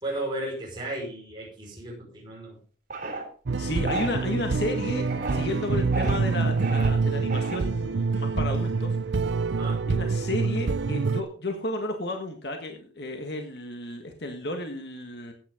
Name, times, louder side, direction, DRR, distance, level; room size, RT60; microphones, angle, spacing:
voice 1, 0.0-2.6 9.5-9.8, right 1 dB, 25° right, -3 dB, 5.0 m, -34 dB
sound 1, 2.9-3.2 3.9-4.1 5.0-5.4 5.9-6.2 6.6-6.9 7.3-7.8, right 2 dB, 50° right, 3.4 m, -32 dB
sound 2, 3.5-11.2, right 4 dB, 75° right, 0.6 m, -26 dB
voice 2, 3.6-9.3 9.9-15.3, left 1 dB, 60° left, 4 dB, 1.7 m, -33 dB
15.0 x 9.6 x 3.7 m, 0.41 s
head